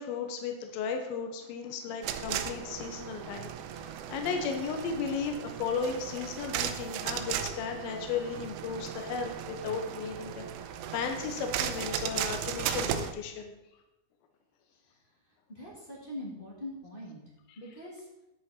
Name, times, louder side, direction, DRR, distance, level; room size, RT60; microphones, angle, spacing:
voice 1, 0.0-13.5, left 6 dB, 75° left, 5 dB, 2.7 m, -35 dB
sound 1, 2.0-13.1, right 9 dB, 80° right, 2.5 m, -36 dB
voice 2, 15.5-17.2 17.5-18.1, left 1 dB, 20° left, -5 dB, 1.6 m, -42 dB
10.5 x 7.7 x 4.2 m, 0.95 s
omnidirectional pair, 4.5 m